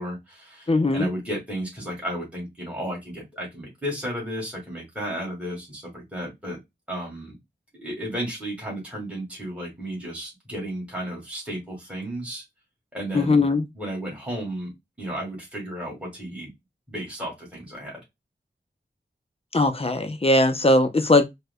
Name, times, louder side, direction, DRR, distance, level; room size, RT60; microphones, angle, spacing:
voice 1, 0.0-6.6 6.9-7.4 7.8-12.4 12.9-13.5 13.7-14.7 15.0-16.5 16.9-18.0, right 1 dB, 5° right, 2.0 m, -33 dB
voice 2, 0.7-1.1 13.1-13.6 19.5-21.2, left 2 dB, 35° left, 0.6 m, -19 dB
4.6 x 2.2 x 2.2 m
wide cardioid pair, 60°, 18 cm